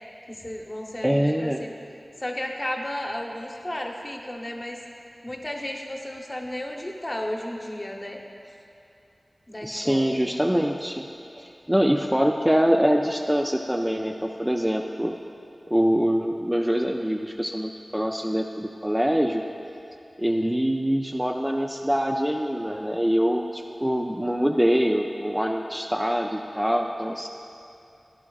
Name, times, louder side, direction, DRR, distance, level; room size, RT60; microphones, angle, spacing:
voice 1, 0.3-1.7 2.2-4.8 5.2-8.2 9.5-10.2, left 1 dB, 30° left, 1 dB, 0.9 m, -33 dB
voice 2, 1.0-1.6 9.6-11.1 11.4-15.1 15.7-19.4 20.2-27.3, equal, 10° right, 2 dB, 0.3 m, -24 dB
12.0 x 11.0 x 2.4 m, 2.7 s
wide cardioid pair, 75°, 0 cm